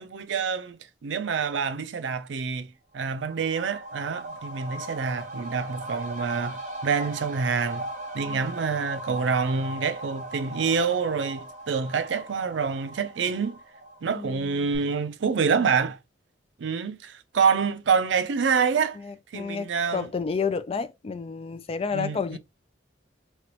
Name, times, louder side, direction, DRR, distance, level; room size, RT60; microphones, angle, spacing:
voice 1, 0.0-2.7 2.9-7.9 8.1-13.6 14.0-16.0 16.6-19.0 19.3-20.1 21.9-22.4, right 5 dB, 85° right, 0.5 m, -27 dB
sound 1, 3.0-14.4 14.7-14.8, right 1 dB, 40° right, 1.0 m, -38 dB
voice 2, 14.1-14.8 19.0-22.4, left 5 dB, 30° left, 0.3 m, -31 dB
3.2 x 2.9 x 2.9 m
head